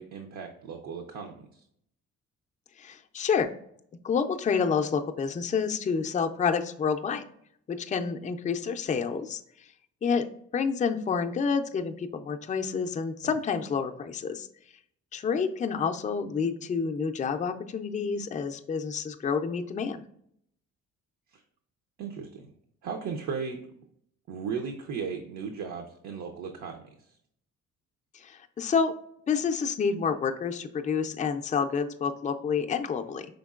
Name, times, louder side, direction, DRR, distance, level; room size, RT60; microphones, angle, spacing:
voice 1, 0.0-1.5 13.2-13.3 22.0-22.5 22.8-23.6 24.3-26.8, right 6 dB, 70° right, 3 dB, 0.7 m, -36 dB
voice 2, 2.8-3.5 4.0-7.3 7.7-9.4 10.0-10.3 10.5-14.5 15.1-20.0 28.2-28.9 29.3-33.3, left 6 dB, 25° left, 6 dB, 0.4 m, -28 dB
5.1 x 3.6 x 2.4 m, 0.68 s
cardioid pair, 90°, 30 cm